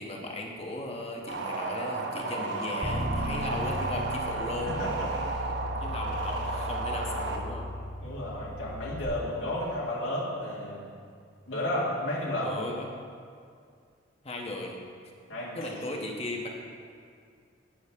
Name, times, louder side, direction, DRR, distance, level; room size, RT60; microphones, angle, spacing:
voice 1, 0.0-4.8 5.8-7.7 12.4-12.9 14.2-14.8 15.6-16.5, left 2 dB, 30° left, 0 dB, 1.1 m, -36 dB
sound 1, 1.3-7.4, right 3 dB, 60° right, 0.8 m, -33 dB
Bass guitar, 2.8-9.1, equal, 10° right, 2.5 m, -36 dB
voice 2, 4.7-5.1 8.0-10.9 11.5-12.5 15.3-15.6, left 1 dB, 80° left, -6 dB, 1.8 m, -32 dB
16.5 x 6.3 x 3.6 m, 2.2 s
head